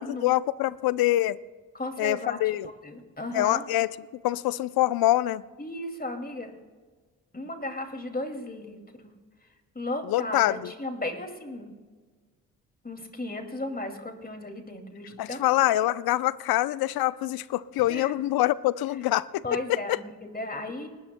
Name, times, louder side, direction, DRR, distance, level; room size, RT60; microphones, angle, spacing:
voice 1, 0.0-1.4 2.0-2.7 3.3-3.9 4.2-5.4 10.0-10.7 15.2-19.4 19.7-20.0, left 15 dB, 70° left, 18 dB, 0.6 m, -25 dB
voice 2, 1.7-2.4 2.8-3.6 5.6-6.5 7.3-8.8 9.7-11.7 12.8-15.4 17.9-18.1 19.4-20.9, left 1 dB, 25° left, 4 dB, 2.4 m, -35 dB
30.0 x 13.0 x 2.2 m, 1.4 s
hypercardioid pair, 40°, 38 cm